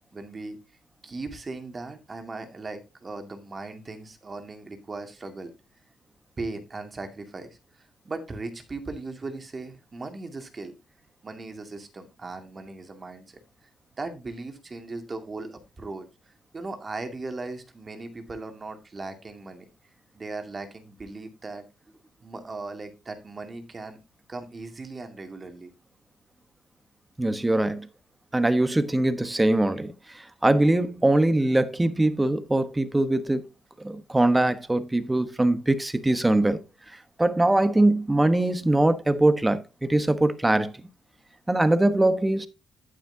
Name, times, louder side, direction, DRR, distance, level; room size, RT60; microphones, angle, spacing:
voice 1, 0.1-0.6 1.0-5.5 6.4-7.6 8.0-10.8 11.2-13.4 14.0-16.1 16.5-19.7 20.2-21.6 22.2-24.0 24.3-25.7, right 3 dB, 30° right, 2.3 m, -38 dB
voice 2, 27.2-27.9 28.3-33.4 33.8-36.6 37.2-40.7 41.5-42.5, right 1 dB, 15° right, 1.2 m, -22 dB
10.0 x 9.2 x 2.8 m
cardioid pair, 90°, 0 cm